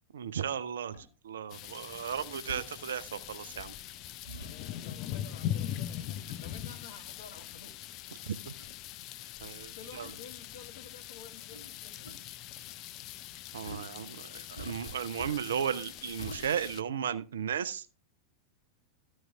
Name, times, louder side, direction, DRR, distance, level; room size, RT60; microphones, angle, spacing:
voice 1, 0.1-0.9 1.2-3.7 8.2-8.3 9.4-10.1 13.5-17.9, right 8 dB, 65° right, 0.6 m, -35 dB
sound 1, 0.9-1.1 2.5-2.7 4.2-4.5 6.3-6.5 7.3-7.4 8.2-8.3 8.6-8.7 10.0-10.2 11.5-11.7 12.0-12.1 13.6-13.9 14.5-15.7 16.2-16.4, right 1 dB, 85° left, 2.2 m, -44 dB
sound 2, 1.5-16.8, left 11 dB, 40° left, 0.5 m, -42 dB
voice 2, 4.3-7.9 9.7-12.2, left 5 dB, 60° left, 1.9 m, -51 dB
13.5 x 6.4 x 3.5 m
figure-of-eight pair, 90°, 0 cm